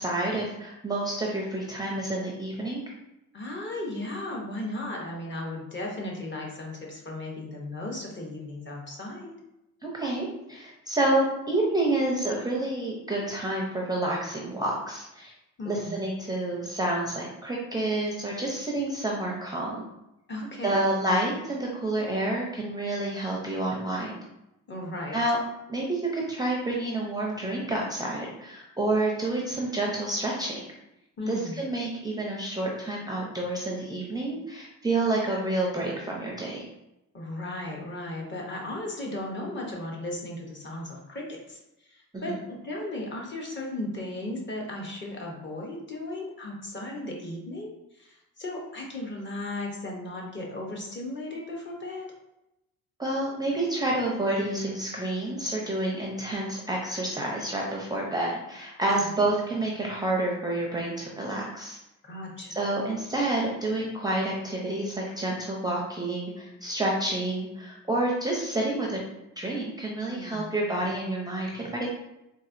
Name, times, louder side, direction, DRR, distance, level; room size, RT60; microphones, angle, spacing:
voice 1, 0.0-2.8 9.8-15.3 15.7-19.8 20.6-24.2 25.1-25.4 25.7-30.6 31.3-36.6 42.1-42.2 53.0-61.8 62.6-69.0 69.4-71.9, right 2 dB, 10° right, -3 dB, 0.5 m, -29 dB
voice 2, 3.3-9.3 15.6-16.0 20.3-20.8 24.7-25.2 31.2-31.6 37.1-52.1 58.9-59.2 62.0-62.6 70.1-70.5, left 1 dB, 35° left, -2 dB, 0.9 m, -36 dB
4.0 x 2.4 x 2.5 m, 0.89 s
cardioid pair, 110°, 34 cm